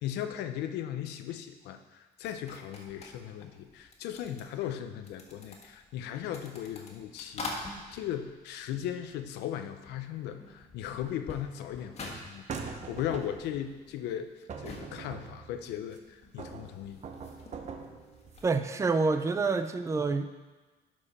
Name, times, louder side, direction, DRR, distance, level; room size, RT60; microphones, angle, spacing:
voice 1, 0.0-14.3 14.6-17.0, left 10 dB, 85° left, 8 dB, 0.7 m, -37 dB
sound 1, 2.2-9.5 9.8-18.6, left 2 dB, 40° left, 1.6 m, -47 dB
sound 2, 12.5-13.6 14.5-16.0 16.4-18.6, right 5 dB, 40° right, 0.9 m, -42 dB
voice 2, 18.4-20.3, right 4 dB, 15° right, 9 dB, 0.5 m, -27 dB
12.0 x 4.8 x 4.2 m, 1.2 s
cardioid pair, 110°, 17 cm